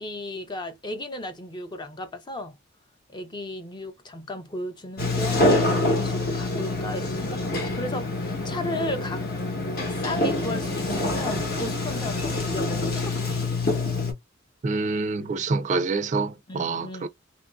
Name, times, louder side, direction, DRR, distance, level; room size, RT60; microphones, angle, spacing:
voice 1, 0.0-2.6 3.1-9.3 9.9-13.5 16.5-17.1, left 1 dB, 20° left, 0.5 m, -35 dB
Sliding door, 5.0-14.1, left 2 dB, 50° left, 1.0 m, -26 dB
voice 2, 14.6-17.1, right 3 dB, 35° right, 0.4 m, -26 dB
2.9 x 2.5 x 2.2 m
head